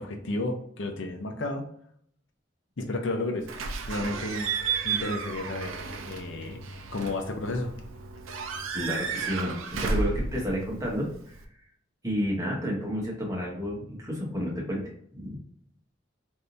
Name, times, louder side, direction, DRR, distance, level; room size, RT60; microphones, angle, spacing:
voice 1, 0.0-1.7 2.8-3.5 3.9-4.5 4.8-5.7 6.1-7.7, left 2 dB, 70° left, 4 dB, 0.6 m, -32 dB
Slam / Squeak / Alarm, 3.5-11.4, right 4 dB, 90° right, 0.5 m, -33 dB
voice 2, 8.7-11.3 12.0-14.8 15.1-15.3, equal, 15° right, -3 dB, 1.0 m, -31 dB
3.4 x 2.7 x 2.6 m, 0.64 s
head